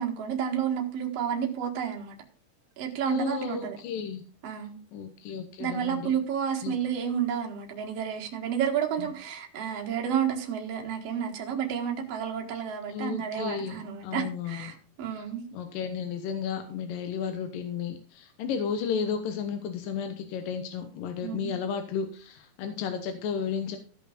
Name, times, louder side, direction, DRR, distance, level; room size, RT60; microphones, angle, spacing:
voice 1, 0.0-2.1 2.8-3.8 4.4-4.8 5.6-15.4 21.2-21.5, right 8 dB, 55° right, 1 dB, 2.5 m, -31 dB
voice 2, 3.1-4.2 4.9-6.1 6.6-6.8 9.0-9.1 12.9-14.7 15.2-15.3 15.5-23.8, left 7 dB, 90° left, 7 dB, 2.7 m, -33 dB
15.0 x 5.6 x 5.1 m, 0.39 s
omnidirectional pair, 3.8 m